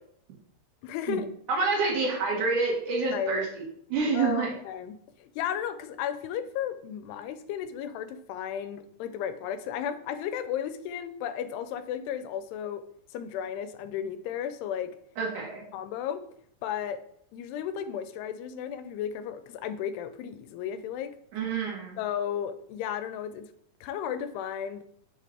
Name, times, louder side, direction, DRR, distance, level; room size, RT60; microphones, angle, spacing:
voice 1, 0.8-1.3 3.1-3.5 4.1-12.8 13.1-14.9 15.7-16.2 16.6-17.0 17.3-21.2 22.0-23.5 23.8-24.8, left 9 dB, 90° left, 11 dB, 2.7 m, -34 dB
voice 2, 1.5-3.5 3.9-4.5 15.2-15.6 21.3-22.0, right 4 dB, 55° right, -2 dB, 3.0 m, -27 dB
6.8 x 5.2 x 4.2 m, 0.68 s
omnidirectional pair, 4.6 m